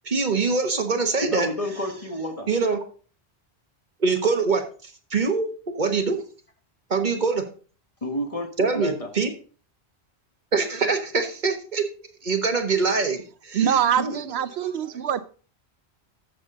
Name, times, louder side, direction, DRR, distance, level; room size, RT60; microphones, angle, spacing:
voice 1, 0.0-1.5 2.5-2.8 4.0-4.6 5.1-5.5 5.8-6.2 6.9-7.4 8.6-9.3 10.5-11.8 12.2-13.8, right 4 dB, 45° right, 6 dB, 1.3 m, -23 dB
voice 2, 1.2-2.5 8.0-8.5 8.7-9.1 13.6-14.2, equal, 35° left, 4 dB, 1.5 m, -30 dB
voice 3, 13.5-15.2, right 9 dB, 75° right, 14 dB, 0.9 m, -24 dB
13.5 x 6.7 x 3.8 m, 0.39 s
omnidirectional pair, 1.1 m